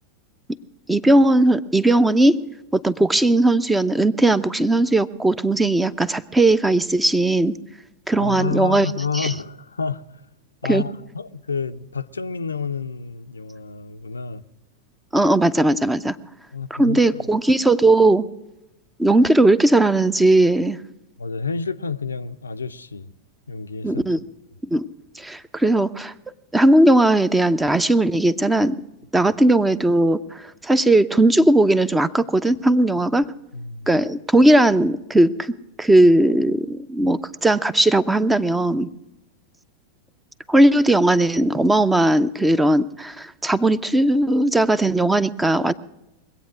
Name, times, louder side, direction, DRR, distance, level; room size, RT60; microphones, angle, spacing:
voice 1, 0.9-2.4 2.7-7.5 8.1-8.9 9.1-9.3 10.7-10.8 15.1-16.2 16.8-18.3 19.0-20.8 23.8-24.2 24.7-24.8 25.2-26.1 26.5-28.8 29.1-33.3 33.9-35.5 35.8-38.9 40.5-45.7, right 1 dB, 10° right, 0.5 m, -18 dB
voice 2, 8.2-10.2 10.6-14.4 16.5-17.3 21.2-23.1 23.5-24.0 33.5-34.0, left 5 dB, 75° left, 0.5 m, -29 dB
22.5 x 8.6 x 6.1 m
figure-of-eight pair, 90°, 0 cm